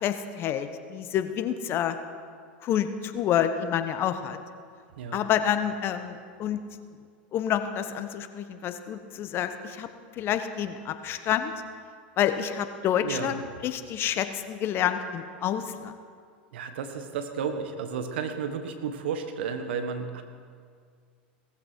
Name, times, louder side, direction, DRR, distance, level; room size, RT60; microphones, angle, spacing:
voice 1, 0.0-2.0 2.6-4.4 5.1-6.6 7.3-9.9 10.2-11.5 12.2-15.9, left 9 dB, 40° left, 9 dB, 1.1 m, -28 dB
voice 2, 13.0-13.4 16.5-20.2, right 6 dB, 75° right, 7 dB, 1.6 m, -32 dB
18.5 x 14.5 x 4.7 m, 2.1 s
hypercardioid pair, 95°, 6 cm